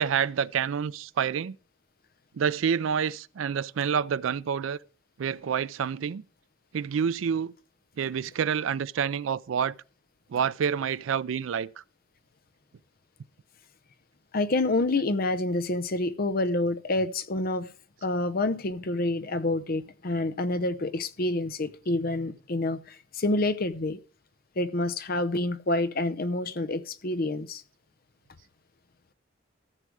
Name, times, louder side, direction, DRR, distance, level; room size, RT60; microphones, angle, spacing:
voice 1, 0.0-1.6 2.3-4.8 5.2-6.2 6.7-7.5 8.0-9.7 10.3-11.7, right 7 dB, 80° right, 0.4 m, -28 dB
voice 2, 14.3-17.7 18.0-24.0 24.6-27.6, left 2 dB, 50° left, 0.7 m, -28 dB
14.0 x 6.6 x 4.7 m
head